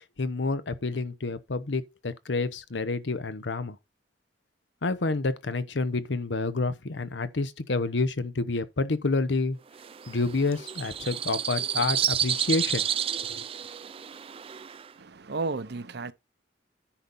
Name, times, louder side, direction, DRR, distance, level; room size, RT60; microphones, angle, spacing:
voice 1, 0.2-3.8 4.8-9.6 10.1-12.9 13.2-13.4, left 3 dB, 85° left, 0.9 m, -29 dB
sound 1, 9.7-14.9, right 9 dB, 30° right, 0.4 m, -31 dB
voice 2, 15.0-16.1, right 3 dB, 65° right, 0.7 m, -33 dB
10.0 x 4.1 x 5.4 m
head